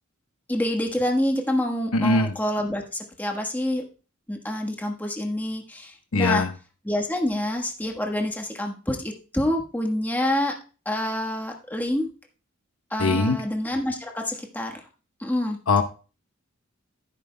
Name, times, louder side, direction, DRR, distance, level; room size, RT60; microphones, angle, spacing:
voice 1, 0.5-3.8 4.3-6.4 6.8-10.5 10.8-12.1 12.9-14.8 15.2-15.6, left 1 dB, 10° left, 2 dB, 1.3 m, -27 dB
voice 2, 1.9-2.3 6.1-6.5 13.0-13.4 15.7-15.8, left 3 dB, 80° left, 6 dB, 0.9 m, -21 dB
12.5 x 10.5 x 2.2 m, 0.35 s
head